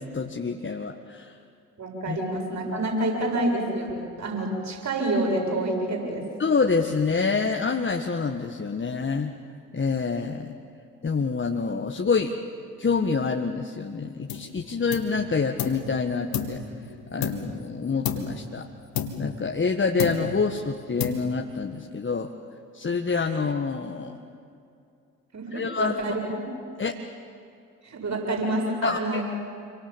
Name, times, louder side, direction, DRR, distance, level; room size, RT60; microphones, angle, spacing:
voice 1, 0.0-1.3 2.1-2.2 6.4-9.3 9.7-10.5 11.0-12.3 12.8-16.6 17.1-18.7 19.2-22.3 22.7-24.1 25.5-26.0 26.8-27.0 28.8-29.3, left 4 dB, 25° left, 3 dB, 1.7 m, -27 dB
voice 2, 1.8-6.3 25.3-26.4 27.8-29.2, right 1 dB, 40° right, 1 dB, 7.6 m, -28 dB
sound 1, 14.3-14.6 14.9-15.9 16.3-17.7 18.0-18.5 19.0-19.7 20.0-20.5 21.0-21.6, left 8 dB, 55° left, 2.6 m, -31 dB
28.5 x 24.5 x 7.5 m, 2.5 s
figure-of-eight pair, 45°, 43 cm